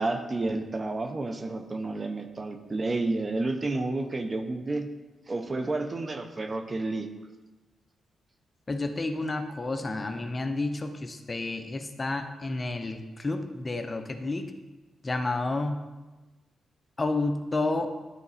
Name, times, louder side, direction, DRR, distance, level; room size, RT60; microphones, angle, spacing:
voice 1, 0.0-4.9 5.3-7.1, right 2 dB, 35° right, 7 dB, 0.8 m, -30 dB
voice 2, 8.7-14.5 15.0-15.8 17.0-17.9, left 2 dB, 30° left, 7 dB, 0.7 m, -30 dB
12.0 x 4.0 x 4.1 m, 1.2 s
cardioid pair, 75°, 0 cm